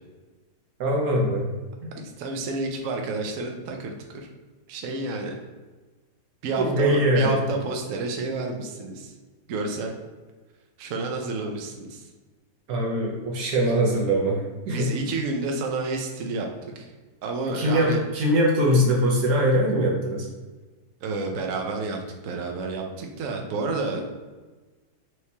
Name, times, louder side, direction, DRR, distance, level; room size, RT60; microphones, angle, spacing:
voice 1, 0.8-1.5 6.6-7.4 12.7-14.9 17.5-20.3, equal, 60° right, -2 dB, 1.1 m, -22 dB
voice 2, 2.0-4.3 4.7-5.4 6.4-9.1 9.5-9.9 10.8-12.0 14.7-16.9 17.2-18.0 21.0-22.0 22.2-24.2, right 3 dB, 75° right, 2 dB, 0.7 m, -30 dB
4.6 x 3.2 x 2.7 m, 1.3 s
omnidirectional pair, 2.1 m